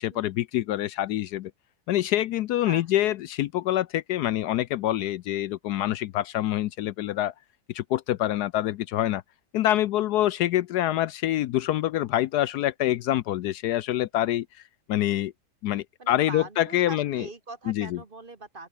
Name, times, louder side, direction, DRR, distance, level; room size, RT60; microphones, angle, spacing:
voice 1, 0.0-1.5 1.9-7.3 7.7-9.2 9.5-14.5 14.9-15.3 15.6-17.3 17.7-18.0, left 13 dB, 75° left, 1.1 m, -26 dB
voice 2, 16.0-18.7, right 3 dB, 30° right, 1.6 m, -42 dB
open air
omnidirectional pair, 1.8 m